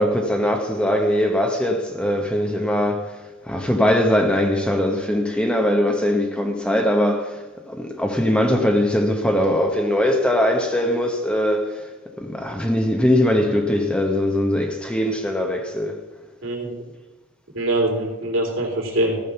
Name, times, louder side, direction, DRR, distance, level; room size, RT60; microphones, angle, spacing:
voice 1, 0.0-3.2 3.5-11.9 12.2-16.0, left 1 dB, 5° left, 1.0 m, -21 dB
voice 2, 16.4-16.8 17.5-19.2, right 1 dB, 65° right, 3.1 m, -23 dB
14.5 x 6.3 x 7.0 m
head